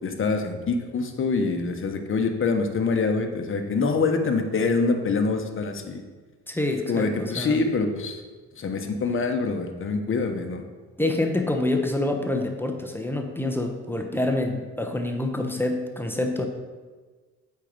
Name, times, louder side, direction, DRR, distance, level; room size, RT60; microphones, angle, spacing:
voice 1, 0.0-6.0 6.9-8.2 8.6-10.6, left 4 dB, 45° left, 5 dB, 1.1 m, -25 dB
voice 2, 6.5-7.6 11.0-16.5, left 2 dB, 5° left, 3 dB, 0.9 m, -26 dB
8.3 x 4.6 x 5.3 m, 1.4 s
cardioid pair, 90°, 30 cm